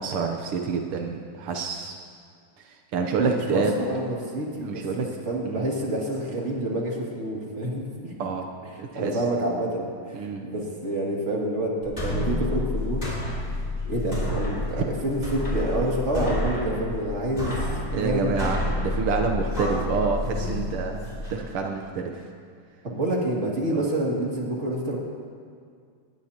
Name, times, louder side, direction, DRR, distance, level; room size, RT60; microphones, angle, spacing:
voice 1, 0.0-2.0 2.6-3.7 4.6-5.1 5.4-5.7 8.2-8.5 8.8-9.2 10.1-10.5 14.8-15.0 17.9-22.2 23.7-23.9, right 5 dB, 80° right, 3 dB, 1.9 m, -28 dB
voice 2, 3.2-8.1 8.7-13.0 13.8-18.3 22.8-25.0, right 1 dB, 30° right, -3 dB, 2.7 m, -28 dB
sound 1, 11.8-21.3, left 1 dB, 20° left, 3.5 m, -29 dB
19.5 x 19.0 x 2.9 m, 2.2 s
omnidirectional pair, 2.4 m